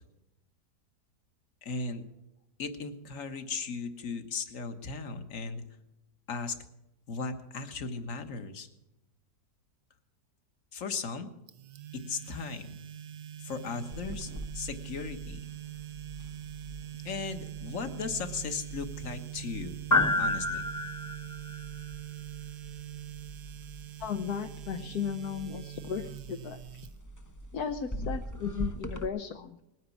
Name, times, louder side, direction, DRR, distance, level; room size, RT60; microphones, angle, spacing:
voice 1, 1.6-2.0 2.6-5.6 6.3-6.5 7.1-8.7 10.7-11.3 11.9-12.8 13.4-15.4 17.0-19.7 20.2-20.7, left 4 dB, 55° left, 8 dB, 1.7 m, -37 dB
sound 1, 11.5-27.4, right 13 dB, 60° right, 0.9 m, -43 dB
sound 2, 13.9-29.1, left 2 dB, 20° left, 0.6 m, -36 dB
voice 2, 24.0-26.6 27.5-29.6, left 7 dB, 70° left, 6 dB, 1.3 m, -35 dB
20.0 x 9.5 x 7.2 m, 0.92 s
omnidirectional pair, 1.7 m